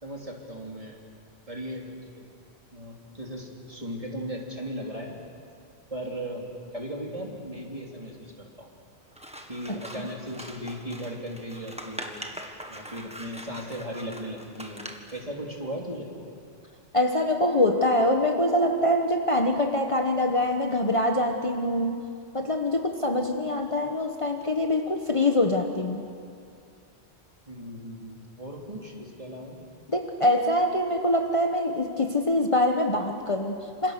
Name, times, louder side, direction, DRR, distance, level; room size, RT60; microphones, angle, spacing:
voice 1, 0.0-1.0 1.5-2.2 2.7-5.1 5.9-6.5 6.7-8.7 9.5-12.2 12.7-14.9 15.1-16.1 27.5-29.6, equal, 30° right, -1 dB, 3.4 m, -37 dB
Scissors, 9.1-15.2, equal, 5° right, 1.7 m, -42 dB
voice 2, 9.7-10.1 16.9-26.1 29.9-33.9, left 1 dB, 30° left, 3 dB, 1.2 m, -24 dB
27.0 x 27.0 x 6.7 m, 2.3 s
omnidirectional pair, 1.1 m